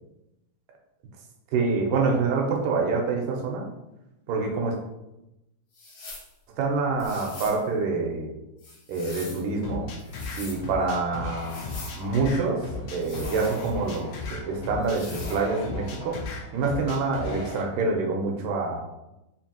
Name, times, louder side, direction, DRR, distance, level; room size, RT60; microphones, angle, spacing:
voice 1, 1.5-3.6 4.3-4.8 6.6-8.3 8.9-9.9 10.4-11.5 12.0-12.6 12.9-16.2 16.5-18.8, right 4 dB, 90° right, 1 dB, 2.3 m, -26 dB
sound 1, 5.7-6.3 7.0-7.6 8.6-9.5 10.0-10.6 11.4-12.0 13.0-14.0 14.8-15.4, left 3 dB, 65° left, 1.3 m, -43 dB
sound 2, 9.6-17.6, left 3 dB, 85° left, 1.3 m, -36 dB
5.4 x 2.6 x 2.7 m, 0.94 s
omnidirectional pair, 3.8 m